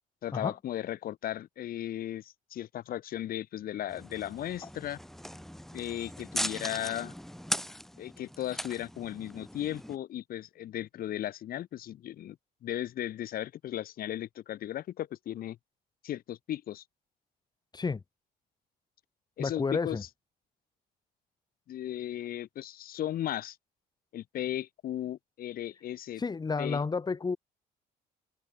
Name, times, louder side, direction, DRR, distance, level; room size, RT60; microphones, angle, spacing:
voice 1, 0.2-5.0 5.7-7.1 8.0-12.4 12.6-15.6 16.0-16.8 19.4-20.0 21.7-23.6 24.1-26.2 26.6-26.8, left 12 dB, 60° left, 1.8 m, -36 dB
sound 1, 3.9-10.0, equal, ahead, 3.6 m, -39 dB
voice 2, 19.4-20.0 26.2-27.4, left 4 dB, 25° left, 2.7 m, -31 dB
cardioid pair, 110°, 17 cm